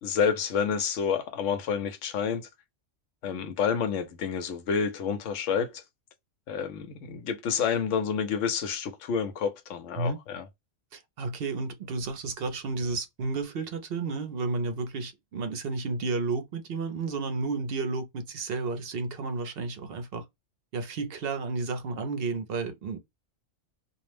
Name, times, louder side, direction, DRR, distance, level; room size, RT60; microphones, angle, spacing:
voice 1, 0.0-2.5 3.2-5.8 6.5-10.5, left 6 dB, 80° left, 0.9 m, -29 dB
voice 2, 10.9-20.2 20.7-23.0, right 3 dB, 65° right, 0.7 m, -32 dB
2.4 x 2.1 x 3.2 m
omnidirectional pair, 1.2 m